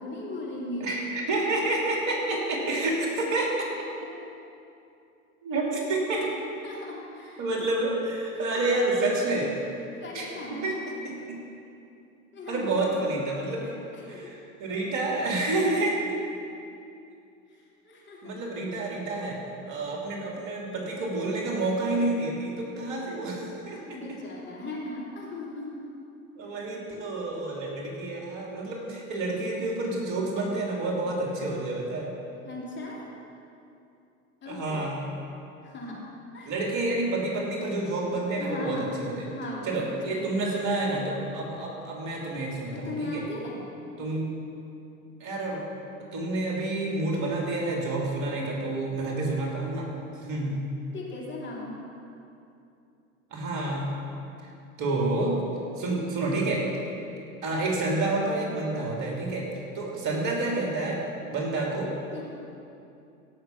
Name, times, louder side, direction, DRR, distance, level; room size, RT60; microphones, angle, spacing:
voice 1, 0.0-1.0 6.2-6.3 6.6-7.4 8.3-8.6 10.0-10.7 12.3-12.8 13.6-14.4 14.7-14.8 17.5-18.4 23.8-25.8 32.4-33.1 34.4-34.9 35.6-36.0 36.3-36.5 38.4-39.0 39.3-40.3 42.7-43.7 50.9-51.7 62.1-62.2, left 2 dB, 30° left, -4 dB, 3.2 m, -38 dB
voice 2, 0.8-3.5 5.4-6.3 7.4-9.5 10.1-10.3 10.6-10.7 11.0-11.4 12.5-13.7 14.0-16.0 18.2-19.4 19.7-23.8 26.4-32.1 34.5-35.1 36.4-39.3 39.6-43.2 44.0-44.3 45.2-45.6 46.0-49.9 50.2-50.6 53.3-53.9 54.4-54.5 54.8-55.4 55.8-56.6 57.4-59.4 59.7-61.0 61.3-61.9, right 2 dB, 45° right, -2 dB, 3.1 m, -29 dB
16.5 x 6.5 x 6.0 m, 2.6 s
hypercardioid pair, 85°, 40 cm